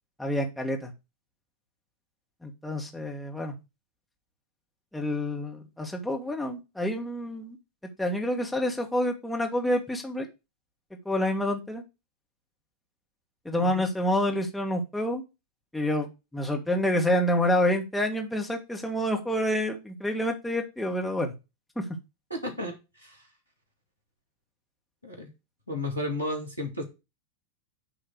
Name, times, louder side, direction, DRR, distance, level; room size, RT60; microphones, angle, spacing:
voice 1, 0.2-0.9 2.4-3.5 4.9-7.6 8.0-10.3 11.1-11.8 13.5-15.2 15.7-16.1 16.3-21.3 21.8-21.9, left 1 dB, 5° left, 1 dB, 1.8 m, -28 dB
voice 2, 13.5-13.9 22.3-22.8 23.0-23.2 25.0-25.3 25.7-26.8, left 1 dB, 85° left, 0 dB, 2.2 m, -33 dB
9.0 x 3.2 x 6.4 m, 0.26 s
figure-of-eight pair, 90°, 0 cm